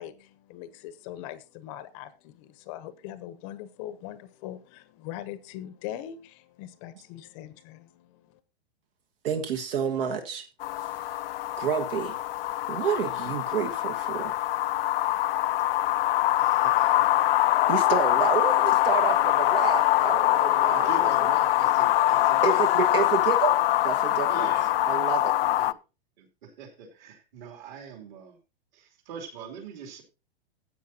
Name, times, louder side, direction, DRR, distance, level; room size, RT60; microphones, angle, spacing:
voice 1, 0.0-8.4, left 12 dB, 30° left, 15 dB, 0.8 m, -41 dB
voice 2, 9.2-10.4 10.8-11.2 11.6-12.2 12.7-14.4 17.7-20.9 22.4-23.6 23.8-24.5 24.9-25.3, right 7 dB, 60° right, 5 dB, 1.5 m, -29 dB
sound 1, 10.6-25.7, left 15 dB, 65° left, 0.4 m, -23 dB
voice 3, 16.4-17.5 17.9-18.0 20.5-22.7 23.2-23.3 24.3-24.8 25.4-25.7 26.2-28.4 28.7-30.0, right 6 dB, 45° right, 4 dB, 2.9 m, -43 dB
15.0 x 8.4 x 2.8 m, 0.30 s
hypercardioid pair, 155°, 31 cm